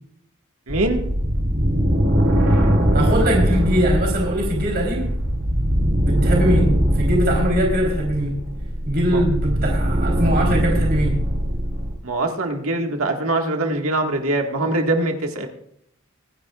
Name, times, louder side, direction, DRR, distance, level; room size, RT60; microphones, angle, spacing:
sound 1, 0.7-11.9, equal, 65° right, 3.1 m, -21 dB
voice 1, 0.7-1.1 9.1-9.2 12.0-15.5, right 2 dB, 85° right, 3 dB, 1.9 m, -23 dB
voice 2, 2.9-5.1 6.0-8.3 8.9-11.1, equal, 45° right, -1 dB, 3.8 m, -21 dB
25.5 x 10.5 x 2.5 m, 0.74 s
head